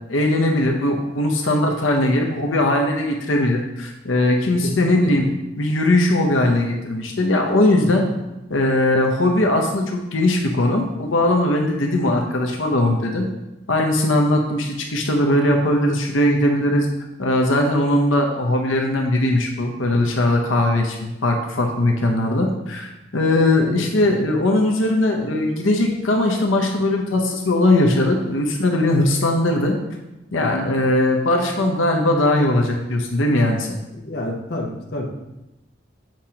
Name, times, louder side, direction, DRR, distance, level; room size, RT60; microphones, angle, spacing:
voice 1, 0.1-5.3 5.6-8.0 8.5-13.3 13.7-16.9 17.2-29.8 30.3-33.8, left 1 dB, 85° left, 2 dB, 0.8 m, -19 dB
voice 2, 4.6-5.1 7.8-8.1 23.8-23.9 30.4-30.7 33.9-35.1, left 1 dB, 50° left, 0 dB, 0.9 m, -29 dB
7.6 x 4.9 x 2.9 m, 0.95 s
head